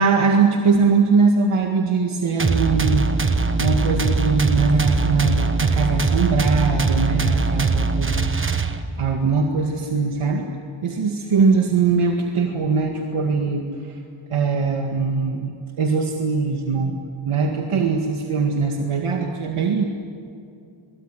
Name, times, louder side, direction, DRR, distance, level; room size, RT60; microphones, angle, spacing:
voice 1, 0.0-3.3 3.6-8.5 9.0-10.5 10.8-14.0 14.3-15.5 15.8-17.0 17.3-19.8, right 4 dB, 80° right, 2 dB, 2.0 m, -21 dB
sound 1, 2.4-9.1, right 3 dB, 25° right, 1.2 m, -21 dB
24.0 x 23.0 x 10.0 m, 2.4 s
wide cardioid pair, 145°, 50 cm